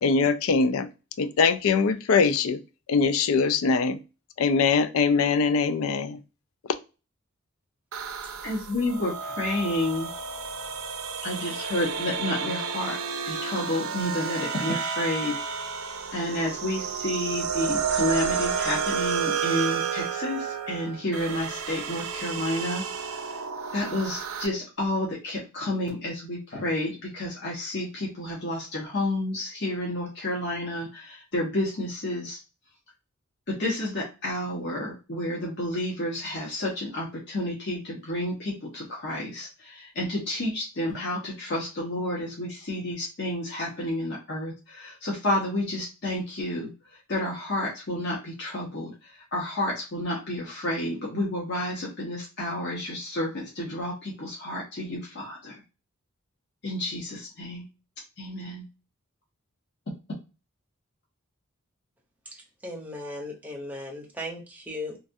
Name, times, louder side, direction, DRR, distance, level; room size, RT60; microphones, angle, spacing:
voice 1, 0.0-0.9 1.2-2.6 2.9-4.0 4.4-6.2, left 5 dB, 75° left, 11 dB, 0.4 m, -22 dB
sound 1, 7.9-24.5, right 6 dB, 90° right, 0.5 m, -31 dB
voice 2, 8.4-10.1 11.2-13.0 13.3-15.4 16.1-23.4 23.7-32.4 33.5-46.7 47.1-55.6 56.6-57.7 58.2-58.7, left 1 dB, 55° left, -3 dB, 0.9 m, -30 dB
voice 3, 62.6-65.0, left 1 dB, 10° right, -1 dB, 0.7 m, -37 dB
3.2 x 2.3 x 2.6 m, 0.30 s
head